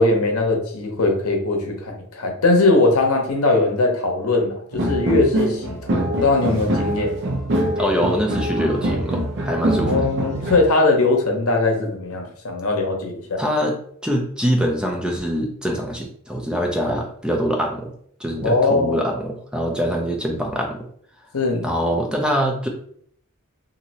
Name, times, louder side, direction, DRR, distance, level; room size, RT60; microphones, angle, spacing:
voice 1, 0.0-7.2 9.8-13.4 18.4-19.0 21.3-21.7, left 2 dB, 75° left, 2 dB, 0.7 m, -20 dB
sound 1, 4.7-10.6, right 1 dB, 55° right, 0.6 m, -24 dB
voice 2, 7.8-10.1 13.4-13.8 14.0-17.9 18.2-20.9 21.6-22.7, equal, 5° right, 1 dB, 0.4 m, -24 dB
3.0 x 2.6 x 2.8 m, 0.62 s
head